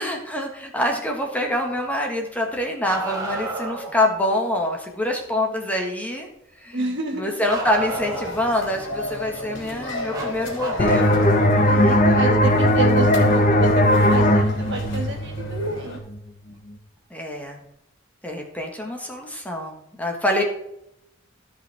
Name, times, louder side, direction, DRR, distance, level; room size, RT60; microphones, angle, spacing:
voice 1, 0.0-6.3 6.6-6.8 7.2-11.3 11.8-12.1 17.1-17.6 18.2-20.4, left 1 dB, 10° left, 1 dB, 1.5 m, -25 dB
Bark, 2.8-3.9 7.5-8.5 10.1-11.6 13.3-13.4 15.3-15.4 16.5-16.6, right 1 dB, 20° right, 2.2 m, -31 dB
voice 2, 6.7-7.4 11.6-16.0, right 2 dB, 65° right, 2 dB, 2.3 m, -29 dB
sound 1, 7.6-16.0, left 2 dB, 65° left, 3.0 m, -35 dB
sound 2, 10.8-16.2, equal, 40° left, 1.1 m, -18 dB
14.0 x 5.6 x 3.5 m, 0.79 s
head